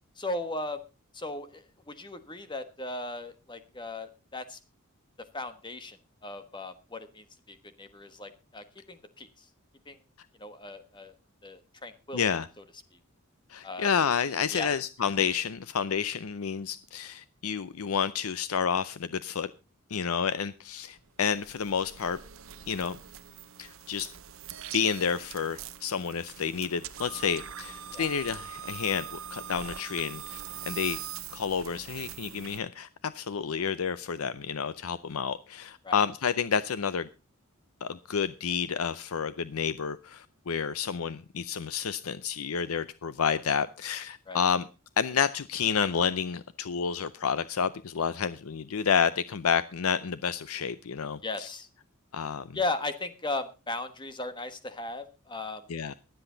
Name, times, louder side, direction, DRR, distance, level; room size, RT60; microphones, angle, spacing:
voice 1, 0.2-0.8 1.1-4.6 5.3-6.0 6.2-9.5 9.9-10.0 10.4-11.1 11.4-12.3 13.6-13.9 14.5-14.7 27.9-28.1 35.8-36.0 44.3-44.4 51.2-51.7 52.5-55.6, left 2 dB, 20° left, 1.3 m, -37 dB
voice 2, 12.1-12.5 13.5-19.5 19.9-22.2 22.7-23.0 23.6-24.1 24.7-31.0 31.3-37.1 37.8-44.6 45.0-51.5 52.1-52.5 55.7-55.9, left 7 dB, 80° left, 0.6 m, -30 dB
sound 1, 21.0-32.6, right 9 dB, 65° right, 1.0 m, -43 dB
22.5 x 8.0 x 3.9 m
head